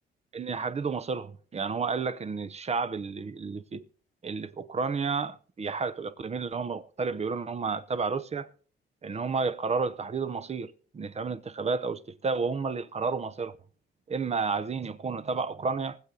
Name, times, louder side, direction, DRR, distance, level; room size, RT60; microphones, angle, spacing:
voice 1, 0.3-3.8 4.2-8.5 9.0-13.6 14.1-16.0, right 4 dB, 35° right, 0.8 m, -31 dB
19.5 x 7.6 x 3.9 m
cardioid pair, 90°, 20 cm